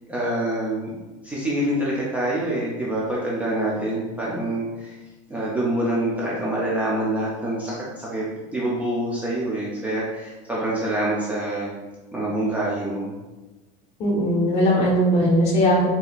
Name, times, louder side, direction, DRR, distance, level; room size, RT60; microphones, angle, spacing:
voice 1, 0.1-0.9 1.2-5.0 5.3-8.2 8.5-11.7 12.1-13.1, right 1 dB, 10° right, -7 dB, 0.5 m, -26 dB
voice 2, 14.0-15.9, equal, 40° left, -4 dB, 1.1 m, -19 dB
4.1 x 2.8 x 2.4 m, 1.2 s
supercardioid pair, 150°, 17 cm